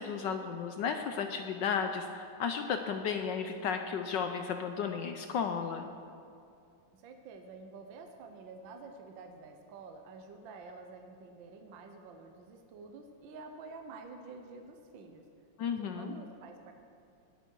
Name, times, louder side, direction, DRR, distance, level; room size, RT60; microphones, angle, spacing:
voice 1, 0.0-5.9 15.6-16.1, left 6 dB, 70° left, 6 dB, 1.1 m, -34 dB
voice 2, 6.9-15.3 15.8-16.7, right 4 dB, 65° right, 5 dB, 1.5 m, -49 dB
20.0 x 8.3 x 4.6 m, 2.5 s
omnidirectional pair, 2.4 m